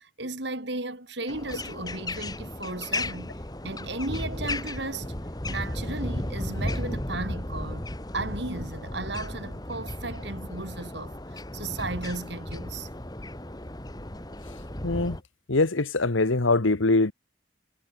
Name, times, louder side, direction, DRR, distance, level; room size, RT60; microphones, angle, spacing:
voice 1, 0.0-3.3 3.6-5.1 5.5-12.9, right 2 dB, 60° right, 4.4 m, -35 dB
sound 1, 1.3-15.2, left 1 dB, 20° left, 2.1 m, -35 dB
voice 2, 14.8-15.2 15.5-17.1, left 3 dB, 85° left, 1.3 m, -23 dB
head